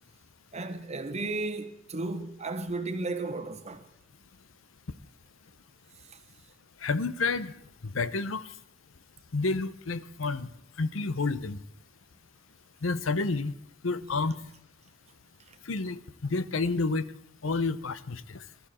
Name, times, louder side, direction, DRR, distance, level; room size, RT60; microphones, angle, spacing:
voice 1, 0.5-3.9 6.1-6.2 14.0-14.1 15.5-15.6, right 3 dB, 35° right, 1.1 m, -34 dB
voice 2, 6.8-7.5 7.9-8.4 9.3-10.5 10.8-11.6 12.8-13.5 13.8-14.3 15.7-16.0 16.3-17.1 17.4-18.4, left 3 dB, 85° left, 0.8 m, -29 dB
20.5 x 13.0 x 4.3 m
head